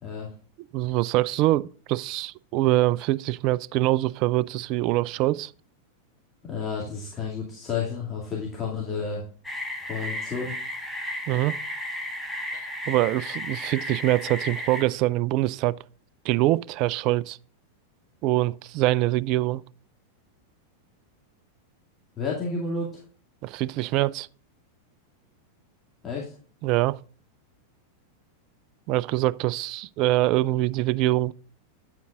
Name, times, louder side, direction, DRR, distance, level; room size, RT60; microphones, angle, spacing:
voice 1, 0.0-0.3 6.4-9.2 9.9-10.5 22.2-22.9 26.0-26.3, left 4 dB, 25° left, 2.3 m, -31 dB
voice 2, 0.7-5.5 11.3-11.6 12.5-15.8 16.2-17.4 18.2-19.6 23.4-24.3 26.6-27.0 28.9-31.3, right 16 dB, 40° right, 0.3 m, -24 dB
sound 1, 9.4-14.8, left 1 dB, ahead, 1.4 m, -34 dB
9.1 x 8.2 x 2.5 m
figure-of-eight pair, 90°, 0 cm